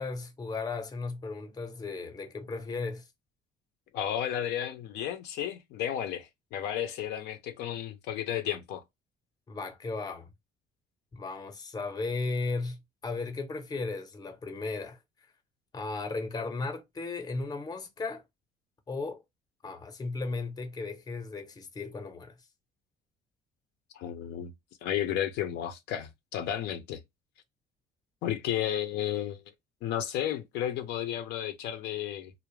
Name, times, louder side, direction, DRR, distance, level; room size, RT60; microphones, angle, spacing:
voice 1, 0.0-3.1 9.5-10.3 11.1-15.0 15.7-18.2 18.9-19.2 19.6-22.4, left 3 dB, 25° left, 0.6 m, -35 dB
voice 2, 3.9-8.8 23.9-24.5 24.8-27.0 28.2-29.4 29.8-32.3, left 10 dB, 85° left, 0.5 m, -33 dB
2.4 x 2.0 x 3.0 m
cardioid pair, 110°, 17 cm